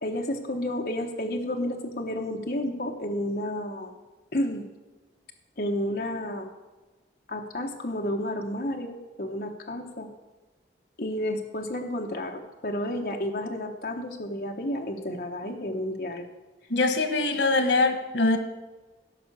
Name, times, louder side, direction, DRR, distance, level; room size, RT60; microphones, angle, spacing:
voice 1, 0.0-4.0 4.3-4.6 5.6-6.5 7.3-10.1 11.0-16.3, left 1 dB, 55° left, 2 dB, 1.1 m, -31 dB
voice 2, 16.7-18.4, left 3 dB, 90° left, 7 dB, 1.4 m, -23 dB
16.0 x 5.7 x 6.9 m, 1.2 s
head